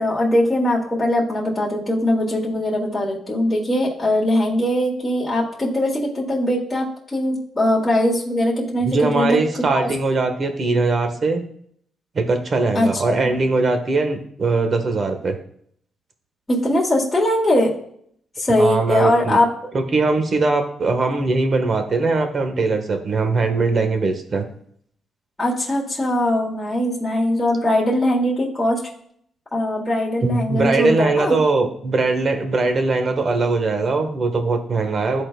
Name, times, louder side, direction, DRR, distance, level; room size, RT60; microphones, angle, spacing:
voice 1, 0.0-9.4 9.8-9.9 12.7-13.3 16.5-17.7 18.4-19.4 25.4-28.8 29.5-31.4, left 1 dB, 15° left, -4 dB, 1.9 m, -21 dB
voice 2, 8.8-11.4 12.1-15.3 18.6-19.4 19.7-24.4 30.2-35.2, right 3 dB, 45° right, 6 dB, 1.2 m, -20 dB
12.5 x 4.3 x 2.2 m, 0.64 s
cardioid pair, 90°, 0 cm